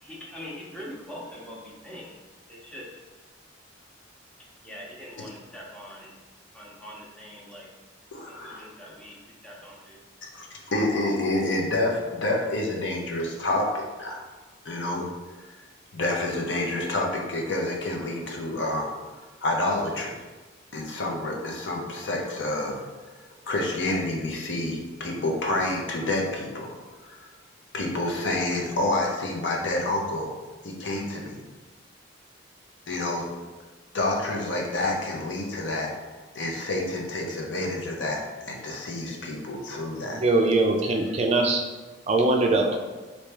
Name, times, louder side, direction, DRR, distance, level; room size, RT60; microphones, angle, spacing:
voice 1, 0.0-2.1 2.5-3.0 4.6-6.1 6.5-7.7 8.2-10.0, left 1 dB, 5° left, -4 dB, 0.6 m, -43 dB
voice 2, 8.1-8.6 10.3-14.3 14.6-15.0 15.5-15.6 15.9-19.2 19.4-20.1 20.7-23.1 23.5-26.7 27.0-27.3 27.7-30.4 30.6-31.4 32.9-33.2 33.9-35.9 36.3-40.2, left 2 dB, 65° left, 0 dB, 0.7 m, -28 dB
voice 3, 40.1-41.6 42.1-42.8, right 2 dB, 35° right, 2 dB, 0.3 m, -22 dB
3.2 x 2.7 x 3.3 m, 1.3 s
head